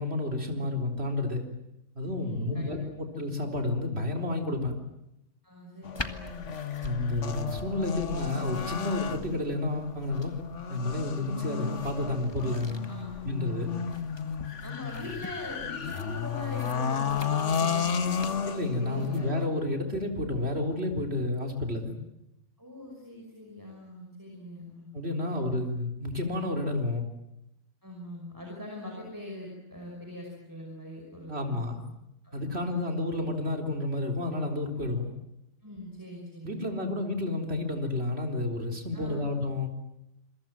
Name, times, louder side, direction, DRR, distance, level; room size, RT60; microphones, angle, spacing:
voice 1, 0.0-1.5 2.0-4.8 6.8-10.3 10.7-12.8 13.2-13.7 18.4-22.0 24.9-27.1 31.3-31.8 32.3-35.1 36.4-39.7, left 2 dB, 55° right, 4 dB, 4.3 m, -30 dB
voice 2, 2.2-2.8 5.4-6.5 12.9-13.2 13.5-14.0 14.6-18.3 18.8-19.3 22.6-24.9 25.2-25.6 27.8-31.6 32.2-32.7 35.6-36.9 38.9-39.3, left 1 dB, 15° right, -1 dB, 5.8 m, -42 dB
sound 1, 5.8-19.5, left 7 dB, 70° left, 1.7 m, -33 dB
sound 2, 5.9-19.2, left 2 dB, 20° left, 1.8 m, -46 dB
27.5 x 23.5 x 7.6 m, 0.88 s
omnidirectional pair, 1.3 m